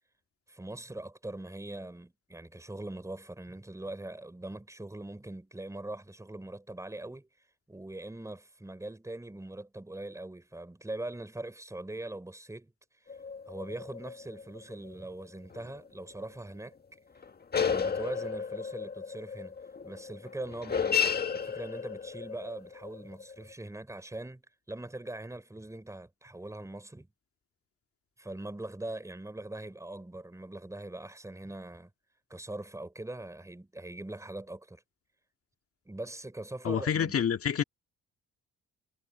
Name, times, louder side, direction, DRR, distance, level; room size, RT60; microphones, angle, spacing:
voice 1, 0.5-7.3 7.7-12.7 13.0-13.2 13.5-16.8 17.6-19.6 19.8-21.1 21.3-27.1 28.2-31.9 32.3-34.8 35.9-37.2, right 1 dB, 10° right, 4.7 m, -42 dB
sound 1, 13.1-14.9 15.5-15.7 16.1-16.2 17.2-23.5, left 6 dB, 30° left, 1.7 m, -33 dB
voice 2, 36.6-37.6, left 8 dB, 50° left, 2.0 m, -28 dB
cardioid pair, 90°, 30 cm